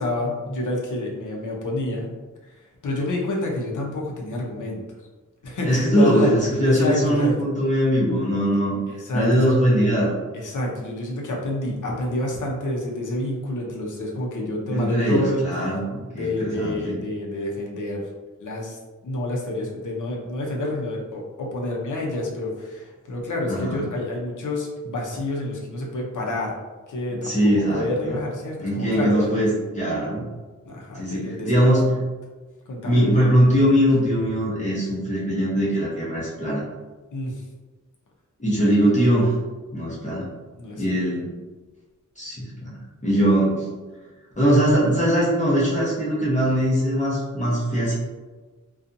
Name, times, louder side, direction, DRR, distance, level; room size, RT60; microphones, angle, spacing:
voice 1, 0.0-2.1 2.4-4.8 5.4-6.3 6.6-7.3 8.9-9.4 10.3-15.4 16.1-18.1 18.4-26.5 26.9-27.3 27.7-29.4 30.6-31.8 32.7-33.0 37.1-37.4 38.6-38.7 40.6-40.8, left 1 dB, 75° left, -2 dB, 0.7 m, -28 dB
voice 2, 5.6-8.8 9.1-10.1 14.7-17.0 23.5-23.8 27.1-28.1 28.6-30.2 31.0-31.9 32.8-36.6 38.4-39.3 39.7-40.3 40.8-41.3 42.2-43.7 44.4-48.0, equal, 25° left, -8 dB, 0.8 m, -21 dB
2.6 x 2.3 x 2.6 m, 1.3 s
wide cardioid pair, 130°, 31 cm